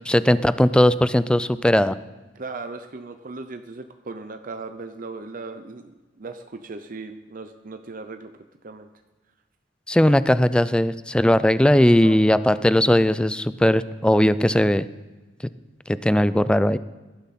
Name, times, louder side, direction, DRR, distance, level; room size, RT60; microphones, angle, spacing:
voice 1, 0.1-1.9 9.9-14.9 16.0-16.8, left 1 dB, 5° left, 15 dB, 0.4 m, -18 dB
voice 2, 2.3-8.3 8.6-8.9 12.0-12.3, right 3 dB, 50° right, 7 dB, 0.7 m, -37 dB
18.0 x 11.5 x 4.2 m, 1.2 s
head